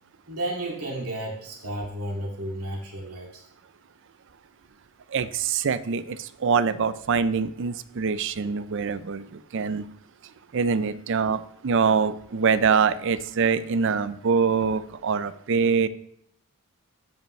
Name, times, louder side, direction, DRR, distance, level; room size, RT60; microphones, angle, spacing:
voice 1, 0.3-3.5, right 1 dB, 85° right, -1 dB, 2.2 m, -32 dB
voice 2, 5.1-6.2 6.4-9.2 9.5-9.8 10.5-15.9, right 5 dB, 55° right, 15 dB, 0.4 m, -24 dB
13.5 x 5.4 x 3.2 m, 0.70 s
head